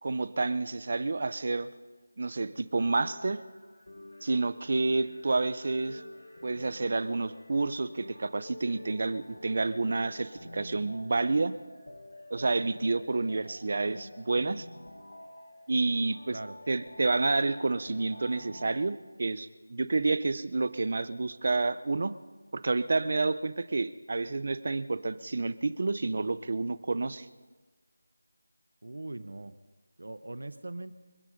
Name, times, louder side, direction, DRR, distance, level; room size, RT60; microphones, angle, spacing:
voice 1, 0.0-1.7 2.2-3.4 4.2-6.0 6.4-11.5 12.3-14.7 15.7-16.4 16.7-22.1 22.5-27.3, right 3 dB, 35° right, 15 dB, 0.7 m, -29 dB
sound 1, 2.9-18.9, left 1 dB, 85° left, 7.0 m, -49 dB
voice 2, 28.8-29.5 30.0-31.0, right 2 dB, 60° right, 13 dB, 1.1 m, -40 dB
28.5 x 9.6 x 5.3 m, 1.3 s
figure-of-eight pair, 180°, 0 cm